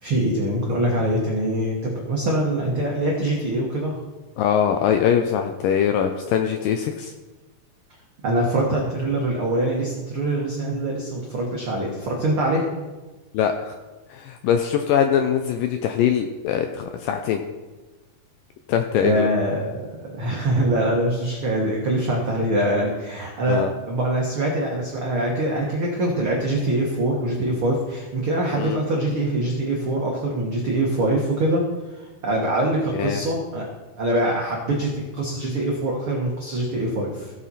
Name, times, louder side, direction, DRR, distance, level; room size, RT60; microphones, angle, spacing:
voice 1, 0.0-4.0 8.2-12.6 19.0-33.7 34.0-37.3, right 1 dB, 80° right, -2 dB, 1.2 m, -24 dB
voice 2, 4.4-7.1 13.3-13.7 14.1-17.4 18.7-19.3 23.5-23.7 28.6-28.8 32.9-33.2, left 8 dB, 80° left, 5 dB, 2.0 m, -22 dB
16.5 x 5.9 x 4.2 m, 1.2 s
omnidirectional pair, 4.5 m